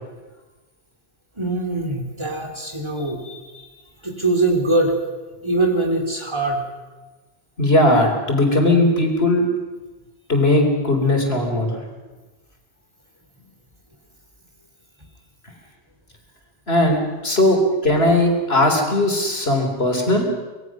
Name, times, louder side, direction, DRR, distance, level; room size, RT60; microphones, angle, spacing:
voice 1, 1.4-3.6 4.0-5.0 5.4-6.7, right 2 dB, 25° right, 2 dB, 3.3 m, -22 dB
voice 2, 7.6-9.4 10.3-11.8 16.7-20.2, left 1 dB, 75° left, 3 dB, 4.1 m, -18 dB
25.0 x 21.0 x 6.2 m, 1.2 s
omnidirectional pair, 1.1 m